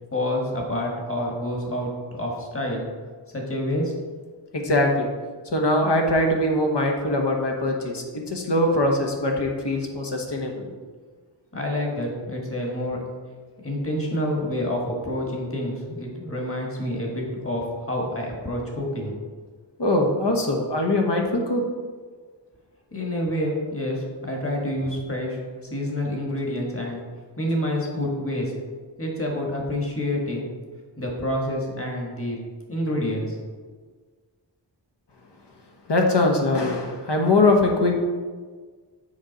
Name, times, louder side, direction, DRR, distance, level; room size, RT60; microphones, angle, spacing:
voice 1, 0.1-2.8 3.3-3.9 11.5-13.0 13.6-19.1 22.9-25.4 25.7-27.0 27.4-28.5 29.0-30.4 31.0-32.4 32.7-33.3, left 1 dB, 30° left, -1 dB, 1.6 m, -28 dB
voice 2, 4.5-5.1 5.5-10.7 19.8-21.6 35.9-38.0, left 2 dB, 60° left, 2 dB, 1.2 m, -22 dB
7.2 x 4.9 x 4.0 m, 1.5 s
wide cardioid pair, 70°, 46 cm